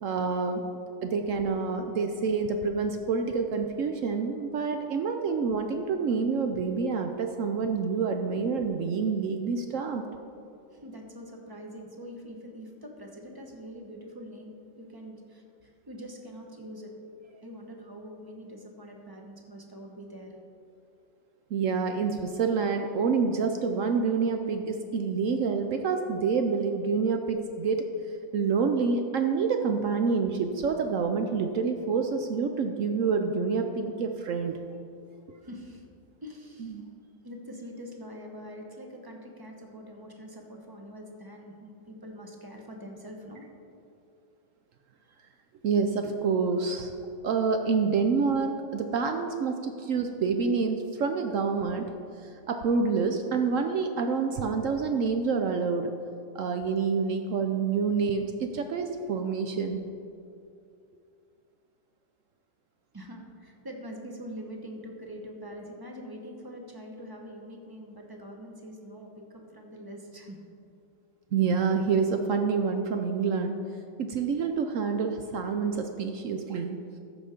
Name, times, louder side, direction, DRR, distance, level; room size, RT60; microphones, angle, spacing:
voice 1, 0.0-0.6 1.0-10.0 21.5-27.8 28.3-34.6 36.6-36.8 45.6-46.9 47.2-51.9 52.2-55.9 56.3-59.9 71.3-73.6 74.0-76.8, right 5 dB, 70° right, 5 dB, 0.7 m, -27 dB
voice 2, 10.7-16.9 17.4-20.4 35.4-35.8 36.2-36.8 37.2-43.4 62.9-70.4, equal, 20° right, 1 dB, 0.7 m, -44 dB
14.0 x 5.3 x 5.0 m, 2.5 s
omnidirectional pair, 1.9 m